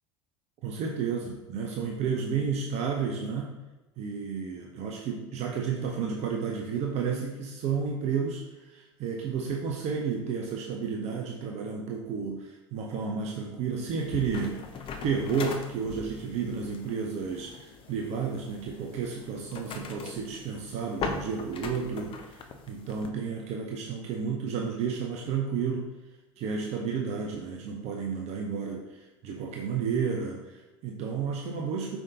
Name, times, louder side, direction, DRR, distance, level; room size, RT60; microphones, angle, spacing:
voice 1, 0.6-3.5 4.0-14.6 15.0-22.4 22.7-25.9 26.4-32.0, right 6 dB, 45° right, 0 dB, 0.6 m, -32 dB
sound 1, 13.9-23.1, left 4 dB, 35° left, 0.5 m, -40 dB
5.0 x 3.4 x 2.7 m, 1.1 s
figure-of-eight pair, 70°, 16 cm